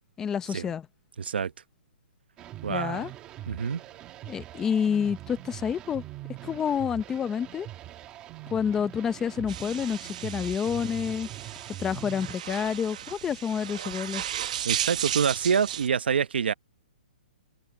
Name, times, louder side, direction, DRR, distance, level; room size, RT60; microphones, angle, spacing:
voice 1, 0.2-0.9 2.7-3.1 4.3-6.0 6.4-7.7 8.5-11.3 11.8-14.2, left 7 dB, 10° left, 0.7 m, -28 dB
voice 2, 1.2-1.5 2.6-3.1 3.5-3.8 14.6-16.5, right 6 dB, 85° right, 1.0 m, -26 dB
sound 1, 2.4-12.3, right 14 dB, 15° right, 1.9 m, -42 dB
sound 2, 9.5-15.9, right 11 dB, 45° right, 0.9 m, -35 dB
hypercardioid pair, 170°, 5 cm